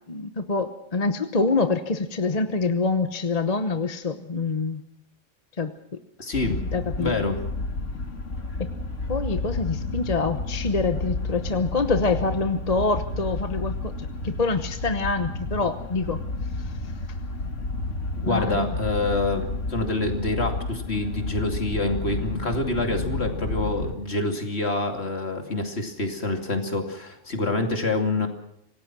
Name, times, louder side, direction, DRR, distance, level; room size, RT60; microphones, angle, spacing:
voice 1, 0.1-4.8 5.6-5.7 6.4-7.3 8.6-8.7 9.1-16.2 16.6-16.7 18.3-18.7, left 3 dB, 35° left, 9 dB, 1.1 m, -26 dB
voice 2, 6.2-6.6 7.0-7.4 18.2-28.3, left 2 dB, 55° left, 4 dB, 2.9 m, -26 dB
sound 1, 6.3-23.9, left 2 dB, 75° left, 2.3 m, -31 dB
26.0 x 18.0 x 6.1 m, 0.76 s
omnidirectional pair, 1.3 m